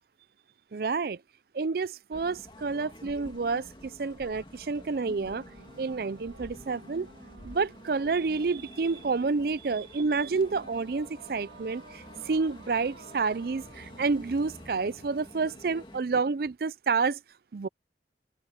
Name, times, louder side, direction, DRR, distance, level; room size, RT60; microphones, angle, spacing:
voice 1, 0.7-1.2 1.5-5.4 5.8-7.1 7.4-17.2 17.5-17.7, right 4 dB, 55° right, 0.4 m, -29 dB
sound 1, 2.1-16.0, left 1 dB, 30° left, 2.5 m, -49 dB
sound 2, 5.0-16.4, right 2 dB, 75° right, 1.6 m, -54 dB
open air
head